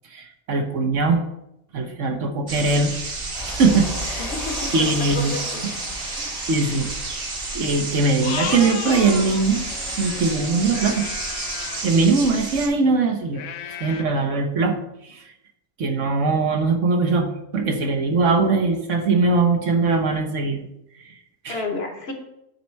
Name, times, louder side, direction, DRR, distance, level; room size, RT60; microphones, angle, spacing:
voice 1, 0.1-1.2 1.7-2.9 3.5-4.3 4.7-5.3 6.5-6.9 7.5-9.6 10.0-11.1 11.8-14.8 15.0-15.2 15.8-20.6 21.4-21.6, right 3 dB, 60° right, 5 dB, 1.1 m, -21 dB
sound 1, 2.5-12.7, right 3 dB, 45° right, 1.3 m, -31 dB
sound 2, 3.3-11.9, left 2 dB, 30° left, 1.1 m, -37 dB
voice 2, 4.2-5.6 6.0-6.4 21.5-22.1, left 3 dB, 45° left, 3 dB, 1.2 m, -32 dB
sound 3, 4.4-6.0 6.8-6.9 7.2-7.3 8.1-11.9 13.3-14.0, left 9 dB, 70° left, 0.8 m, -35 dB
9.5 x 4.2 x 4.5 m, 0.84 s
omnidirectional pair, 1.5 m